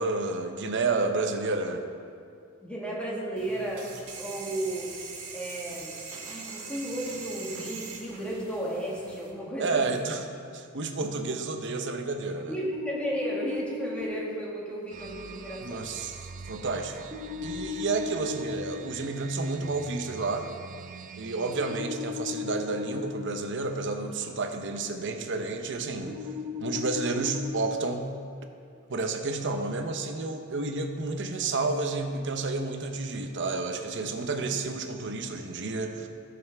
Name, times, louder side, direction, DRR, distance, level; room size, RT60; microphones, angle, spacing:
voice 1, 0.0-1.8 9.6-10.2 10.5-12.6 15.6-16.2 16.5-17.0 17.4-20.5 21.2-26.2 26.6-28.1 28.9-36.1, right 3 dB, 55° right, 6 dB, 0.8 m, -30 dB
voice 2, 2.6-3.8 4.2-4.9 5.3-6.0 6.3-9.8 12.5-15.9 34.4-34.5, right 1 dB, 5° left, -5 dB, 1.8 m, -34 dB
sound 1, 3.4-9.3, right 4 dB, 85° right, 1.6 m, -42 dB
sound 2, 12.6-14.0 17.1-18.5 21.6-23.0 26.1-27.5, left 5 dB, 20° right, 1.4 m, -36 dB
sound 3, 14.9-21.8, right 5 dB, 35° right, 0.3 m, -45 dB
14.0 x 6.9 x 3.5 m, 2.3 s
head